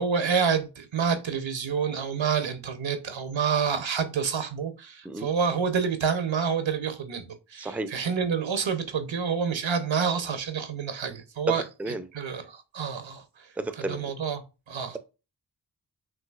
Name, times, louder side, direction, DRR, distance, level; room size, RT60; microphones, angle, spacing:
voice 1, 0.0-11.6 12.1-13.5 13.8-15.0, right 6 dB, 90° right, 0.9 m, -28 dB
voice 2, 7.6-7.9 11.5-12.1 13.6-14.1, right 2 dB, 5° right, 0.4 m, -32 dB
5.9 x 2.8 x 2.4 m
wide cardioid pair, 60°, 44 cm